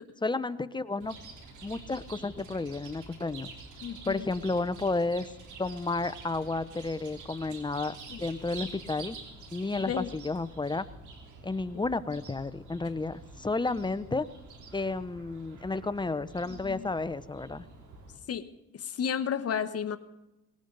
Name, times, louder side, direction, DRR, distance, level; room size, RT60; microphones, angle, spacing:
voice 1, 0.2-1.2 1.6-3.5 4.1-5.3 5.6-9.2 9.5-10.9 11.4-14.3 14.7-17.6, left 3 dB, 15° left, 14 dB, 0.7 m, -32 dB
Chirp tweet, 1.0-18.2, right 3 dB, 75° right, 3.3 m, -48 dB
voice 2, 3.8-4.2 8.1-8.2 9.8-10.1 16.5-16.8 18.3-18.4 18.7-20.0, left 8 dB, 50° left, 10 dB, 1.2 m, -32 dB
19.5 x 18.0 x 4.0 m, 0.96 s
cardioid pair, 90°, 30 cm